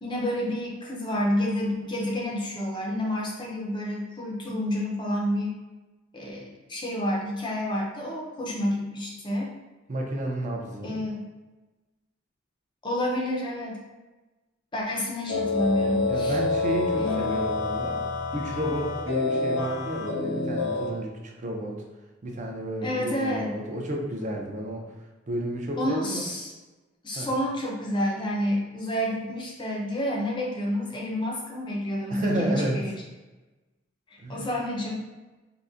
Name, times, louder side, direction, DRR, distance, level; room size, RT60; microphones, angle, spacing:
voice 1, 0.0-5.6 6.1-9.6 10.8-11.2 12.8-13.8 14.7-16.4 17.0-17.3 22.8-23.6 25.8-26.5 27.0-33.0 34.3-35.0, left 1 dB, 25° left, -2 dB, 0.5 m, -29 dB
voice 2, 9.9-11.0 16.1-18.0 18.3-21.8 22.2-24.9 25.3-26.2 27.1-27.3 32.1-32.8 34.2-34.5, right 1 dB, 40° right, 1 dB, 0.5 m, -31 dB
sound 1, 15.3-20.9, left 3 dB, 75° left, 0.6 m, -28 dB
3.8 x 2.1 x 2.4 m, 1.2 s
head